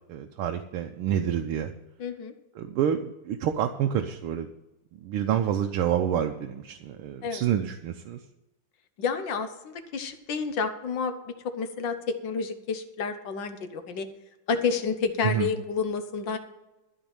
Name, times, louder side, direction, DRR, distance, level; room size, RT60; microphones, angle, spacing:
voice 1, 0.1-1.7 2.6-4.5 5.0-8.2 15.2-15.5, right 9 dB, 80° right, 5 dB, 1.7 m, -28 dB
voice 2, 2.0-2.3 7.2-7.4 9.0-14.1 14.5-16.4, left 5 dB, 60° left, 8 dB, 1.6 m, -30 dB
13.0 x 5.3 x 8.9 m, 1.0 s
omnidirectional pair, 2.4 m